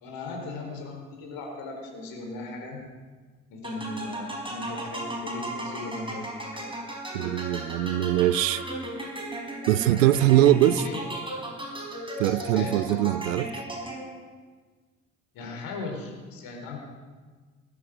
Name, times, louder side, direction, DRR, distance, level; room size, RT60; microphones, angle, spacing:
voice 1, 0.0-2.9 3.5-6.7 10.7-11.0 12.5-12.8 15.3-16.8, left 2 dB, 65° left, 2 dB, 4.1 m, -37 dB
sound 1, 3.6-14.3, right 1 dB, 15° right, 4.6 m, -36 dB
voice 2, 7.1-8.6 9.7-10.8 12.2-13.6, right 13 dB, 85° right, 18 dB, 0.6 m, -22 dB
20.0 x 10.0 x 5.0 m, 1.4 s
hypercardioid pair, 50°, 38 cm